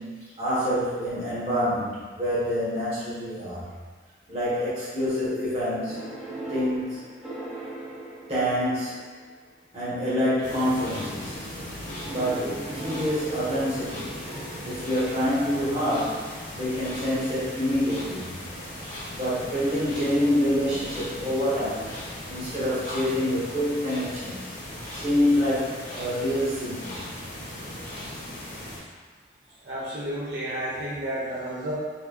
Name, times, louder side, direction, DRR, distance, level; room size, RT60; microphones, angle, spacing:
voice 1, 0.0-3.7 4.3-6.2 6.5-7.1 8.3-9.2 9.7-11.4 12.0-14.2 14.6-18.3 19.1-21.9 22.3-24.5 24.9-27.0, equal, 35° right, -10 dB, 1.3 m, -27 dB
sound 1, 5.9-9.2 10.0-10.4 11.8-16.0 18.0-18.2, right 2 dB, 5° right, 1.1 m, -40 dB
sound 2, 10.4-28.8, left 1 dB, 75° left, 1.4 m, -38 dB
voice 2, 29.6-31.7, right 1 dB, 75° right, -9 dB, 1.2 m, -31 dB
4.4 x 3.3 x 2.4 m, 1.4 s
head